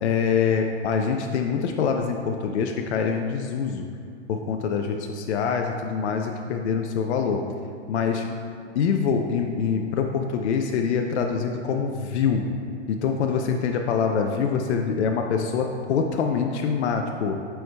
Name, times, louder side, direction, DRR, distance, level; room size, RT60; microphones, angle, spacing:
voice 1, 0.0-3.9 4.3-7.4 7.9-8.3 8.7-12.5 12.9-17.4, left 6 dB, 70° left, 3 dB, 0.5 m, -25 dB
9.1 x 4.6 x 2.2 m, 2.3 s
hypercardioid pair, 150°, 35 cm